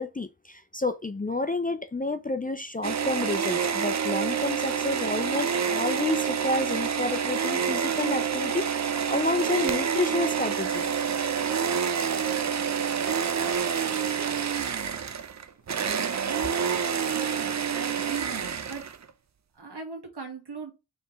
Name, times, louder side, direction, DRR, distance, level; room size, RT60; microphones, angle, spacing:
voice 1, 0.0-10.9, left 2 dB, 20° left, 0.5 m, -30 dB
sound 1, 2.8-19.1, right 7 dB, 40° right, 0.6 m, -27 dB
voice 2, 17.1-18.9 19.5-20.7, right 4 dB, 65° right, 1.7 m, -40 dB
4.2 x 3.4 x 3.1 m
cardioid pair, 40°, 42 cm